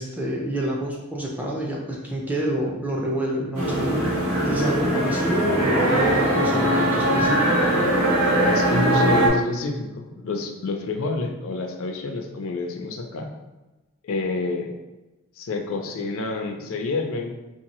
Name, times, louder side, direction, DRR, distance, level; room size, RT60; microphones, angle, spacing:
voice 1, 0.0-7.7, equal, 5° right, -2 dB, 0.4 m, -28 dB
sound 1, 3.5-9.3, right 1 dB, 80° right, 0.9 m, -21 dB
voice 2, 8.5-13.3 14.0-14.7 15.4-17.3, left 3 dB, 65° left, 4 dB, 0.4 m, -28 dB
2.9 x 2.7 x 3.0 m, 1.1 s
head